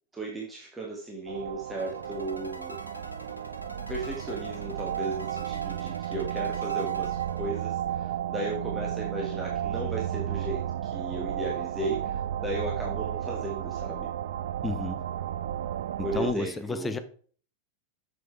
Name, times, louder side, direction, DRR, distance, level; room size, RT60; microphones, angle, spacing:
voice 1, 0.1-2.9 3.9-14.1 16.0-17.0, right 2 dB, 10° right, 1.6 m, -35 dB
sound 1, 1.3-16.3, right 10 dB, 60° right, 0.4 m, -33 dB
sound 2, 1.8-8.1, equal, 90° left, 0.9 m, -45 dB
voice 2, 14.6-15.0 16.0-17.0, left 3 dB, 10° left, 0.7 m, -31 dB
7.7 x 7.0 x 3.2 m
figure-of-eight pair, 90°, 0 cm